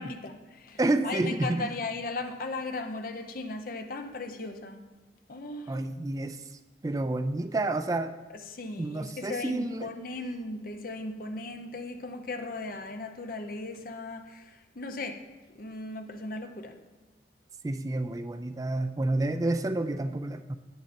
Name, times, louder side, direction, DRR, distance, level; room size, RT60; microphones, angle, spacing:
voice 1, 0.0-4.8 5.3-5.9 8.3-15.2 15.5-16.8, left 2 dB, 50° left, 6 dB, 0.8 m, -37 dB
voice 2, 0.8-1.7 5.7-6.4 6.8-8.1 8.8-9.9 17.6-20.6, right 2 dB, 20° right, 9 dB, 0.3 m, -29 dB
10.5 x 9.0 x 4.3 m, 1.2 s
head